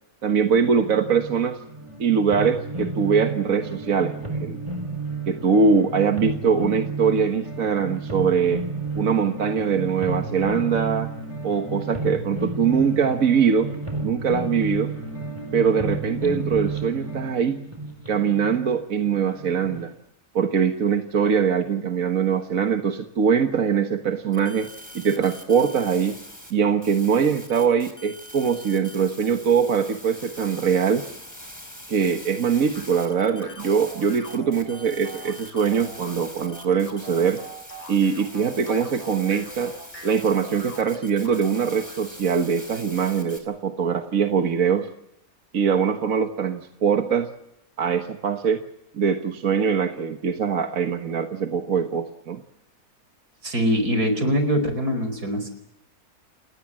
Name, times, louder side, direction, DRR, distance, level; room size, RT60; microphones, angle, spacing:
voice 1, 0.2-1.6 2.0-4.6 5.3-8.6 9.0-11.1 11.4-13.7 14.0-14.9 15.5-17.6 18.1-19.9 20.4-24.7 25.0-26.2 26.5-31.1 31.9-37.4 37.9-39.7 40.0-44.9 45.5-47.3 47.8-48.6 48.9-52.4, right 6 dB, 60° right, 5 dB, 1.7 m, -22 dB
sound 1, 0.7-19.8, right 3 dB, 20° right, 4.5 m, -32 dB
sound 2, 24.3-26.5 26.8-43.4, equal, 10° left, 4.5 m, -43 dB
sound 3, 32.7-42.0, equal, 50° left, 5.6 m, -43 dB
voice 2, 53.4-55.5, equal, 85° right, 9 dB, 5.5 m, -23 dB
30.0 x 19.5 x 7.6 m, 0.81 s
omnidirectional pair, 1.6 m